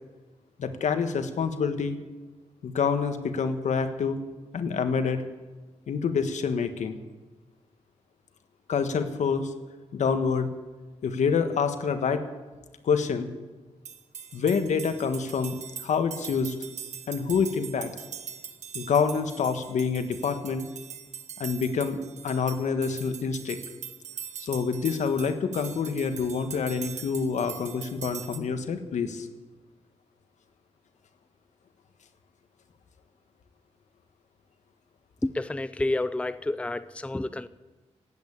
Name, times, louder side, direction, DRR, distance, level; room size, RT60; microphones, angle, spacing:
voice 1, 0.6-2.0 2.6-4.2 4.5-5.2 5.9-7.0 8.7-9.5 9.9-10.5 11.0-12.2 12.8-13.3 14.3-16.6 17.1-17.9 18.7-20.7 21.4-22.0 22.2-23.6 24.4-29.3, left 5 dB, 85° left, 8 dB, 1.4 m, -27 dB
sound 1, 13.8-28.4, right 7 dB, 75° right, 1.2 m, -42 dB
voice 2, 35.2-37.5, left 2 dB, 10° left, 14 dB, 0.5 m, -29 dB
17.0 x 9.0 x 8.6 m, 1.2 s
cardioid pair, 95°, 12 cm